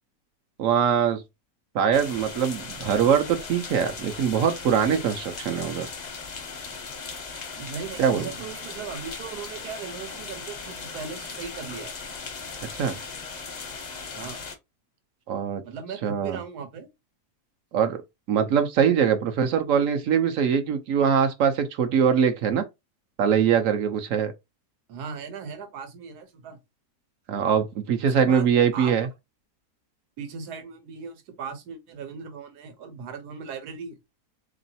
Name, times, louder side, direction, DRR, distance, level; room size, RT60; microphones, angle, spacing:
voice 1, 0.6-1.2 1.7-5.9 8.0-8.3 12.7-13.0 15.3-15.6 16.0-16.4 17.7-18.0 18.3-22.6 23.2-24.3 27.3-29.1, right 7 dB, 65° right, 0.9 m, -22 dB
sound 1, 1.9-14.6, left 5 dB, 45° left, 0.5 m, -38 dB
voice 2, 7.6-11.9 14.1-14.4 15.6-16.9 24.9-26.6 28.0-28.9 30.2-34.0, right 6 dB, 80° right, 1.4 m, -38 dB
3.9 x 3.0 x 2.6 m
omnidirectional pair, 1.6 m